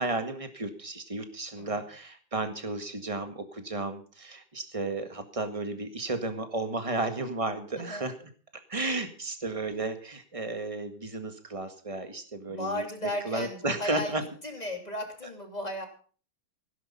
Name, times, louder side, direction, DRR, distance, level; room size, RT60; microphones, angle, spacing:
voice 1, 0.0-8.3 8.7-12.8 13.2-14.2, right 2 dB, 15° right, 7 dB, 1.7 m, -33 dB
voice 2, 7.8-8.1 12.5-14.1 14.4-15.9, left 1 dB, 20° left, 3 dB, 3.1 m, -35 dB
17.0 x 10.5 x 5.6 m, 0.41 s
omnidirectional pair, 2.3 m